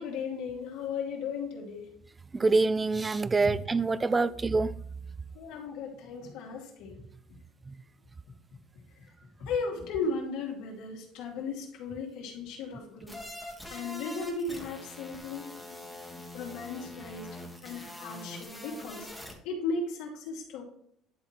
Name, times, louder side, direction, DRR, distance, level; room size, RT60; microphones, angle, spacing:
voice 1, 0.0-1.9 3.4-3.5 5.3-7.0 9.4-13.2 13.7-15.8 16.3-17.3 17.6-19.1 19.4-20.6, left 4 dB, 80° left, 2.5 m, -36 dB
voice 2, 2.3-4.7 7.7-7.8, right 3 dB, 20° right, 0.3 m, -26 dB
sound 1, 13.1-19.3, left 1 dB, ahead, 1.6 m, -44 dB
11.0 x 4.0 x 4.4 m
cardioid pair, 125°, 0 cm